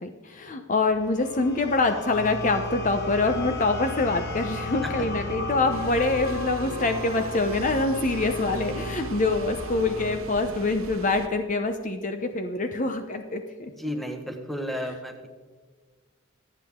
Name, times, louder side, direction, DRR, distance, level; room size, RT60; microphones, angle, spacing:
voice 1, 0.0-13.7, left 3 dB, 40° left, 7 dB, 0.7 m, -25 dB
sound 1, 0.8-10.2, left 1 dB, 55° left, 1.6 m, -35 dB
sound 2, 5.7-11.3, right 3 dB, 85° right, 1.0 m, -41 dB
voice 2, 13.7-15.3, equal, ahead, 4 dB, 1.3 m, -33 dB
26.0 x 8.8 x 3.7 m, 1.4 s
head